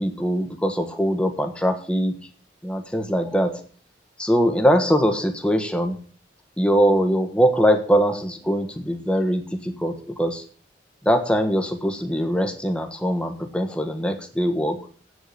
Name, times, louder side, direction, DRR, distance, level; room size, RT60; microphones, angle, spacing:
voice 1, 0.0-2.3 2.6-3.6 4.2-6.0 6.6-10.4 11.0-14.8, equal, 5° left, 5 dB, 1.3 m, -22 dB
8.6 x 8.0 x 8.4 m, 0.43 s
head